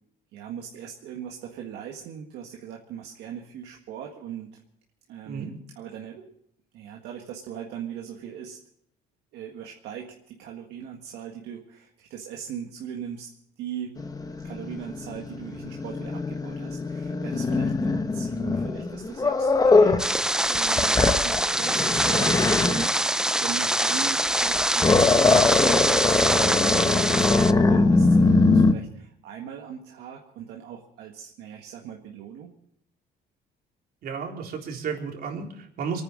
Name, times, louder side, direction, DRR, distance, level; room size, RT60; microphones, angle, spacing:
voice 1, 0.3-4.6 5.1-6.3 6.7-8.6 9.3-13.3 13.6-14.0 14.4-20.2 20.5-23.0 23.4-32.5, right 9 dB, 85° right, 1 dB, 1.7 m, -39 dB
Growling, 14.0-20.1 20.5-22.9 24.3-28.7, left 3 dB, 20° left, 1.2 m, -22 dB
sound 1, 20.0-27.5, right 1 dB, 5° right, 0.5 m, -24 dB
voice 2, 34.0-36.0, right 6 dB, 65° right, 1 dB, 3.7 m, -33 dB
23.5 x 9.7 x 6.2 m, 0.71 s
cardioid pair, 110°, 17 cm